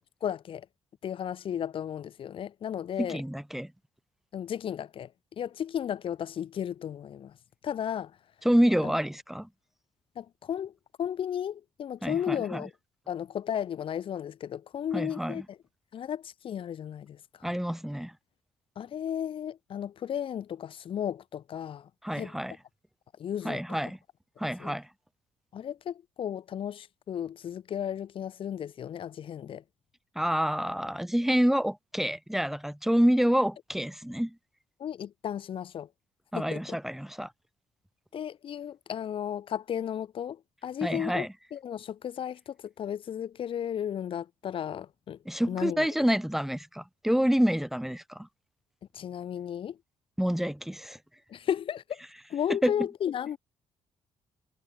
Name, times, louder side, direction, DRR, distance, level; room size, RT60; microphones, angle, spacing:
voice 1, 0.2-0.7 1.0-3.2 4.3-7.4 7.6-8.2 8.8-8.9 10.1-12.7 13.1-15.6 15.9-17.5 18.8-22.3 23.2-23.6 24.6-24.7 25.5-29.6 34.8-35.9 36.3-36.8 38.1-45.2 45.5-45.9 48.9-49.8 51.3-52.0 52.3-53.4, left 9 dB, 55° left, 2.9 m, -34 dB
voice 2, 3.0-3.7 8.4-9.5 12.0-12.6 14.9-15.4 17.4-18.1 22.0-22.5 23.4-24.0 24.4-24.9 30.2-34.4 36.3-37.3 40.8-41.3 45.3-48.3 50.2-51.0 52.6-52.7, equal, 5° right, 1.9 m, -27 dB
cardioid pair, 110°, 11 cm